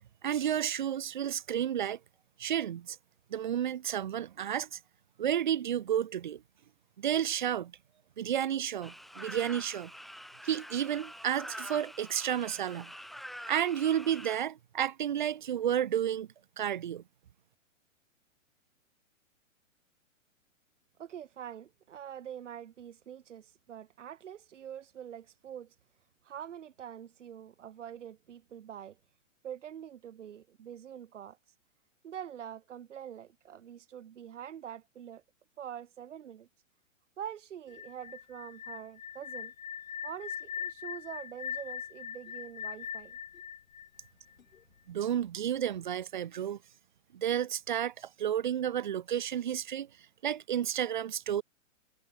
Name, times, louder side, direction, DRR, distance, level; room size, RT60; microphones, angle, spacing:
voice 1, 0.2-2.0 2.4-3.0 3.3-4.8 5.2-6.4 7.0-7.7 8.2-9.9 10.4-12.9 13.5-16.3 16.6-17.0 44.9-46.6 47.1-49.9 50.2-51.4, right 10 dB, 35° right, 0.7 m, -31 dB
sound 1, 8.8-14.4, equal, ahead, 1.7 m, -46 dB
voice 2, 21.0-25.7 26.2-29.0 29.4-31.4 32.0-35.2 35.6-36.5 37.2-39.5 40.0-43.2, right 9 dB, 65° right, 2.2 m, -45 dB
sound 2, 37.7-44.6, left 8 dB, 90° left, 2.6 m, -41 dB
hypercardioid pair, 180°, 40 cm